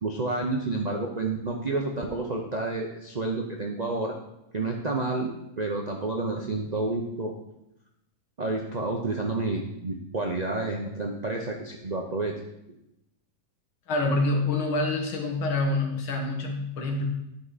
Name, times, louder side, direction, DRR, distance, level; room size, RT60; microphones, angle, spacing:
voice 1, 0.0-4.1 4.5-7.3 8.4-12.3, right 2 dB, 75° right, 0 dB, 0.3 m, -30 dB
voice 2, 13.9-17.1, left 2 dB, 85° left, 2 dB, 2.3 m, -26 dB
11.5 x 5.9 x 4.1 m, 0.85 s
omnidirectional pair, 2.2 m